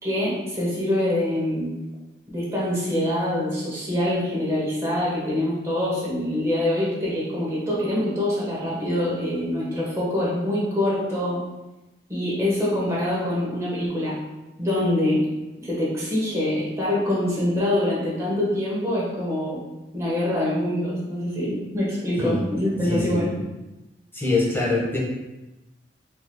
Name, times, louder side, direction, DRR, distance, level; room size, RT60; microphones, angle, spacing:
voice 1, 0.0-1.7 2.3-11.4 12.1-14.2 14.6-15.2 15.6-19.6 19.9-23.3, left 1 dB, 15° right, -7 dB, 1.2 m, -25 dB
voice 2, 22.8-23.3 24.1-25.0, left 2 dB, 15° left, -6 dB, 1.0 m, -24 dB
4.8 x 3.0 x 2.3 m, 1.0 s
head